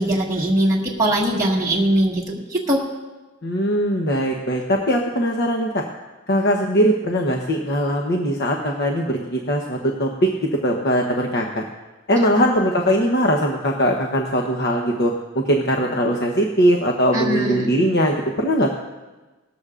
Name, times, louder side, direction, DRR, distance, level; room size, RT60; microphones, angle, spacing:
voice 1, 0.0-2.8 12.3-12.4 17.1-17.7, right 1 dB, 15° right, -4 dB, 1.7 m, -21 dB
voice 2, 3.4-5.9 6.3-10.3 10.6-11.6 12.1-18.7, equal, 50° left, 1 dB, 0.9 m, -20 dB
18.5 x 13.5 x 2.5 m, 1.2 s
head